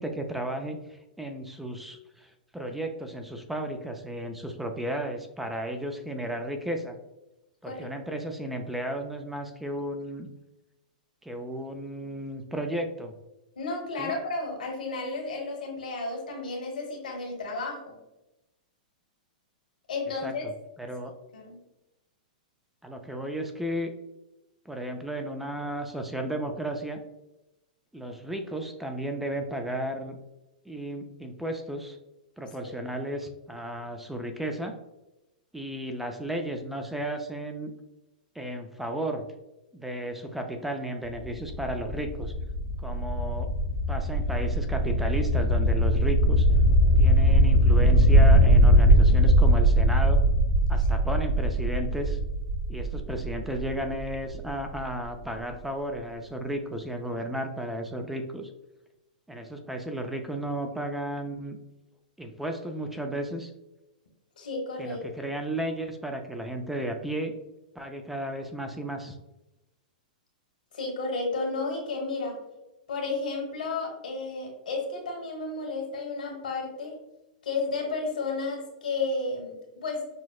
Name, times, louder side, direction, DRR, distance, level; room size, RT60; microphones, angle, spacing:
voice 1, 0.0-7.0 7.6-10.3 11.2-13.1 14.0-14.1 20.2-20.5 20.8-21.1 22.8-23.9 24.7-27.0 27.9-30.2 30.7-32.0 32.4-34.7 35.5-37.7 38.4-39.3 39.7-42.3 42.8-43.5 43.9-46.5 47.0-50.2 50.7-52.2 52.7-58.5 59.3-61.6 62.2-63.5 64.8-67.3 67.8-69.2, right 1 dB, 5° right, 4 dB, 0.3 m, -34 dB
voice 2, 13.5-18.0 19.9-20.4 21.3-21.6 32.6-32.7 49.2-49.3 64.4-65.0 70.7-72.4 72.9-77.0 77.4-80.0, left 3 dB, 90° left, 0 dB, 1.4 m, -32 dB
sound 1, 41.1-54.8, equal, 70° left, 0.7 m, -21 dB
6.0 x 2.0 x 2.4 m, 0.96 s
hypercardioid pair, 130°, 5 cm